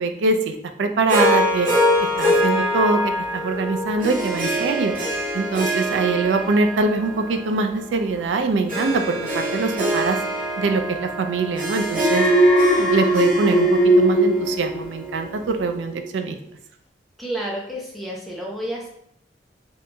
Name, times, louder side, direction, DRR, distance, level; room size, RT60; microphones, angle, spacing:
voice 1, 0.0-1.7 2.0-4.9 5.3-10.2 10.6-12.3 12.8-13.7 14.0-16.4, right 3 dB, 90° right, 6 dB, 0.3 m, -23 dB
Harp, 1.1-15.5, equal, 50° right, 0.7 m, -25 dB
Alarm, 12.0-15.4 15.7-16.1, right 1 dB, 80° left, 0.4 m, -18 dB
voice 2, 17.2-18.9, right 1 dB, ahead, -3 dB, 0.5 m, -30 dB
2.8 x 2.7 x 2.2 m, 0.71 s
head